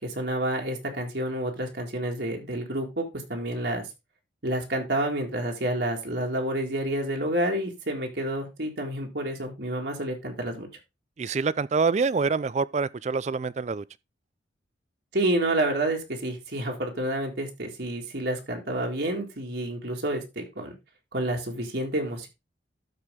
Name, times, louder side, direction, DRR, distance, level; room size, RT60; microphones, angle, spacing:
voice 1, 0.0-3.9 4.4-10.7 15.1-20.7 21.1-22.3, right 1 dB, 60° right, 2.0 m, -29 dB
voice 2, 11.2-13.8, right 4 dB, 35° right, 0.3 m, -26 dB
13.0 x 4.7 x 3.5 m
head